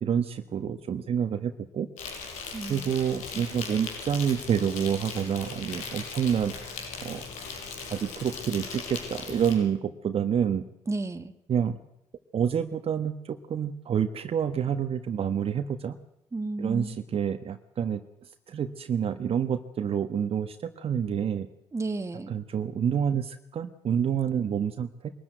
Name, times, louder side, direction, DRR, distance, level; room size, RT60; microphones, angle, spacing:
voice 1, 0.0-1.9 2.7-7.2 7.9-10.6 11.5-11.8 12.3-16.0 16.6-18.0 18.5-21.5 22.3-25.1, right 8 dB, 50° right, 7 dB, 1.4 m, -28 dB
Insect, 2.0-9.5, left 5 dB, 80° left, 6.0 m, -38 dB
voice 2, 2.5-2.9 10.9-11.3 16.3-17.0 21.7-22.4, right 2 dB, 25° right, 8 dB, 2.0 m, -32 dB
22.5 x 13.5 x 9.3 m, 0.80 s
supercardioid pair, 80°, 13 cm